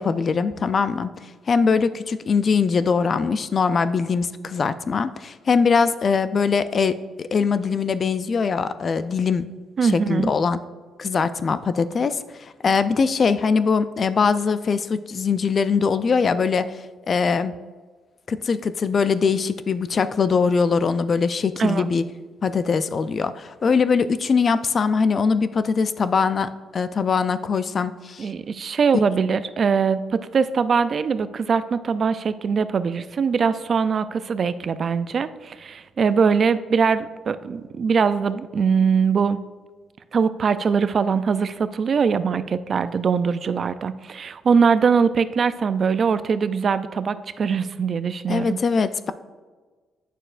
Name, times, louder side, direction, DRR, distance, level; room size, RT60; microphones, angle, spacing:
voice 1, 0.0-9.4 9.8-10.6 11.0-16.8 17.1-17.5 18.3-22.0 22.4-28.3 48.3-49.1, left 5 dB, 45° left, 13 dB, 0.3 m, -22 dB
voice 2, 9.8-10.3 21.6-21.9 28.2-39.4 40.1-48.6, right 6 dB, 50° right, 14 dB, 0.3 m, -22 dB
9.0 x 6.4 x 2.5 m, 1.4 s
cardioid pair, 90°, 0 cm